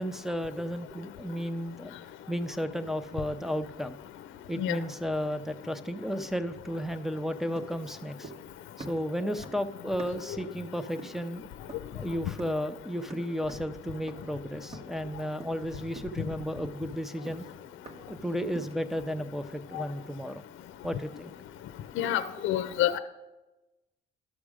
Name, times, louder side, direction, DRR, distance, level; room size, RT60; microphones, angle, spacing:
voice 1, 0.0-2.0 2.3-4.0 4.5-8.3 8.8-11.5 11.9-17.5 18.1-20.4 20.8-21.3 22.0-22.1, equal, ahead, 11 dB, 0.6 m, -33 dB
sound 1, 7.6-8.5 8.8-10.4 11.0-11.3 11.7-12.0 12.4-12.7 13.1-13.8 14.1-14.4 14.7-15.1 15.4-15.7 16.0-18.2 18.6-18.9, right 2 dB, 30° right, 1.3 m, -47 dB
voice 2, 22.0-23.0, left 12 dB, 80° left, 10 dB, 0.5 m, -28 dB
12.5 x 6.1 x 4.9 m, 1.1 s
cardioid pair, 90°, 20 cm